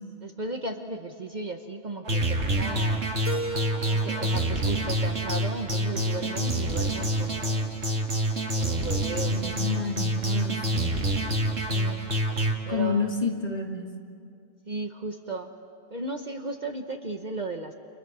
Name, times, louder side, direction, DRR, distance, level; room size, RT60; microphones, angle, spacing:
voice 1, 0.2-3.1 3.9-7.9 8.6-10.0 11.7-12.1 12.7-13.1 14.7-15.5 15.9-17.7, right 3 dB, 40° right, 5 dB, 1.3 m, -35 dB
sound 1, 2.0-12.5, right 1 dB, 70° right, 2.5 m, -27 dB
Keyboard (musical), 3.3-6.2, right 1 dB, 10° right, 1.1 m, -38 dB
voice 2, 9.3-11.0 12.7-13.8, left 4 dB, 35° left, 1 dB, 2.2 m, -29 dB
30.0 x 29.0 x 6.2 m, 2.3 s
omnidirectional pair, 1.2 m